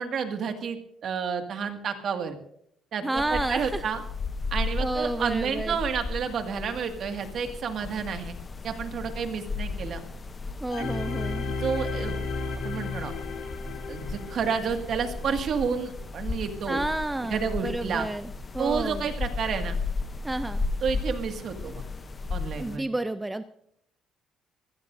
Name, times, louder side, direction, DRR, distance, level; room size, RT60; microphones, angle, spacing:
voice 1, 0.0-2.4 2.9-4.0 4.5-8.4 8.6-10.0 10.8-10.9 11.5-12.2 12.6-13.1 13.9-16.8 17.3-18.1 18.6-19.8 20.8-21.8 22.3-22.9, right 6 dB, 50° right, 6 dB, 2.0 m, -30 dB
voice 2, 3.0-3.8 4.8-5.8 10.6-11.5 16.7-19.1 20.2-20.6 22.6-23.4, right 2 dB, 10° right, 10 dB, 0.5 m, -30 dB
sound 1, 3.2-22.8, left 3 dB, 25° left, 0.8 m, -35 dB
sound 2, 10.7-15.5 16.0-16.1, left 4 dB, 70° left, 3.1 m, -34 dB
24.0 x 16.5 x 2.7 m, 0.69 s
cardioid pair, 145°, 0 cm